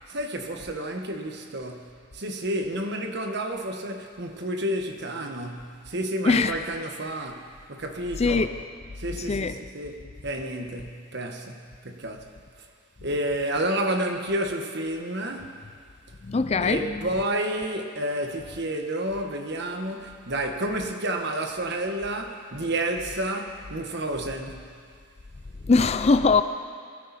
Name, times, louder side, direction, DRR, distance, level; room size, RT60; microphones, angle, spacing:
voice 1, 0.1-8.5 9.0-12.3 13.0-15.6 16.6-24.7, right 1 dB, 55° right, 1.4 m, -30 dB
voice 2, 6.3-6.6 8.2-8.5 9.3-9.5 16.2-17.0 25.7-26.4, left 4 dB, 30° left, 0.4 m, -21 dB
21.0 x 14.0 x 4.2 m
head